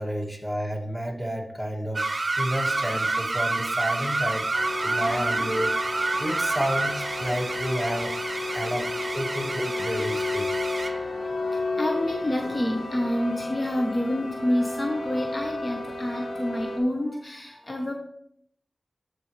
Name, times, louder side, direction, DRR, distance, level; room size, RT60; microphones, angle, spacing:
voice 1, 0.0-5.9 6.2-8.2 8.5-10.5, equal, 10° left, -2 dB, 2.3 m, -31 dB
sound 1, 1.9-11.0, right 3 dB, 50° right, 0.4 m, -28 dB
voice 2, 2.6-2.9 5.1-5.2 7.4-7.7 8.9-9.1 10.6-10.8 11.2-17.9, left 1 dB, 45° left, 2 dB, 1.1 m, -29 dB
sound 2, 4.5-16.8, left 3 dB, 85° left, 1.7 m, -32 dB
13.5 x 4.8 x 3.3 m, 0.70 s
cardioid pair, 40°, 0 cm